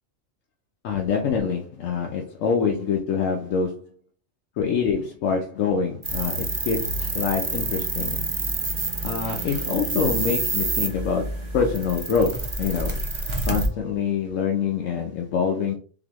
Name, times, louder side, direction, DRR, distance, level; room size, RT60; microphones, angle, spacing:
voice 1, 0.8-3.9 4.6-8.2 9.0-13.0 13.5-15.7, left 6 dB, 85° left, 1 dB, 1.1 m, -25 dB
sound 1, 6.0-13.7, right 3 dB, 30° right, 0.7 m, -28 dB
4.0 x 3.6 x 3.0 m, 0.40 s
omnidirectional pair, 1.3 m